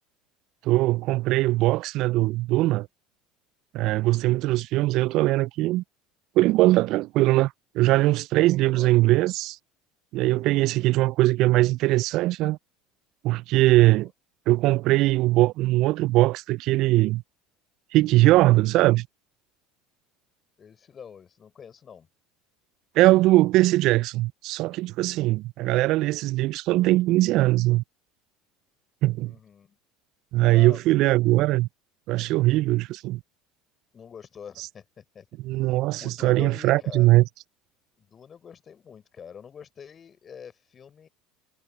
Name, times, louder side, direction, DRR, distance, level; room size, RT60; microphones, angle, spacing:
voice 1, 0.6-2.9 3.7-5.8 6.4-9.6 10.1-12.6 13.2-14.1 14.5-17.2 17.9-19.1 23.0-27.8 29.0-29.3 30.3-31.7 32.1-33.2 35.4-37.2, right 18 dB, 60° right, 0.4 m, -21 dB
voice 2, 8.4-8.9 10.3-10.6 14.0-14.1 20.6-22.1 29.2-29.8 30.5-31.3 33.9-35.3 35.9-37.2 38.0-41.1, left 7 dB, 35° left, 4.0 m, -45 dB
hypercardioid pair, 70°, 0 cm